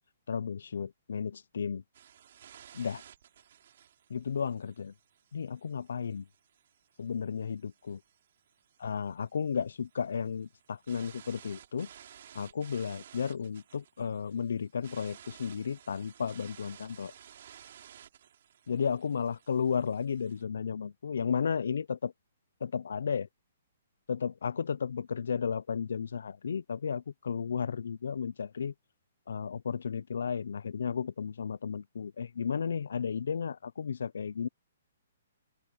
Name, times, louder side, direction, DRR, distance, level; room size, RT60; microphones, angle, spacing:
voice 1, 0.3-1.8 2.7-3.0 4.1-4.9 5.3-6.3 7.0-8.0 8.8-11.9 12.3-17.1 18.7-22.1 22.6-23.3 24.1-28.7 29.3-34.5, left 6 dB, 75° left, 0.4 m, -33 dB
sound 1, 1.9-20.4, right 9 dB, 50° right, 3.0 m, -56 dB
open air
hypercardioid pair, 175°, 0 cm